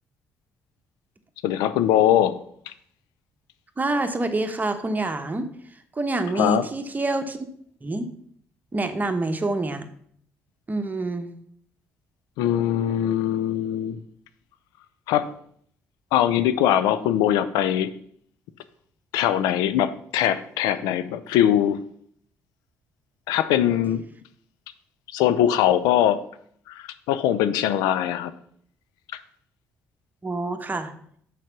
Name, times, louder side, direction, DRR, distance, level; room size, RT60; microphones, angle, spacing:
voice 1, 1.4-2.4 2.7-2.8 6.4-6.6 12.4-14.0 15.1-15.3 16.1-17.9 19.1-21.8 23.3-24.0 25.1-26.2 26.7-28.3, left 11 dB, 80° left, 13 dB, 0.5 m, -21 dB
voice 2, 3.8-7.5 7.8-8.1 8.7-9.8 10.7-11.3 30.2-30.9, right 2 dB, 25° right, 7 dB, 1.2 m, -27 dB
6.5 x 5.0 x 6.0 m, 0.64 s
hypercardioid pair, 55°, 7 cm